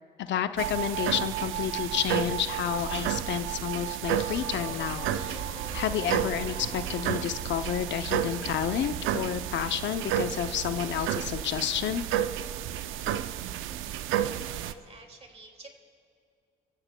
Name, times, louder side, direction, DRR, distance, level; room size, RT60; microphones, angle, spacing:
voice 1, 0.2-5.4 5.7-12.0, left 10 dB, 65° left, 10 dB, 0.6 m, -30 dB
sound 1, 0.6-14.7, right 11 dB, 85° right, 0.5 m, -31 dB
sound 2, 4.1-9.1, left 3 dB, 40° left, 2.4 m, -45 dB
voice 2, 14.6-15.7, right 3 dB, 30° right, 3 dB, 2.2 m, -50 dB
28.0 x 15.0 x 2.2 m, 2.3 s
cardioid pair, 90°, 20 cm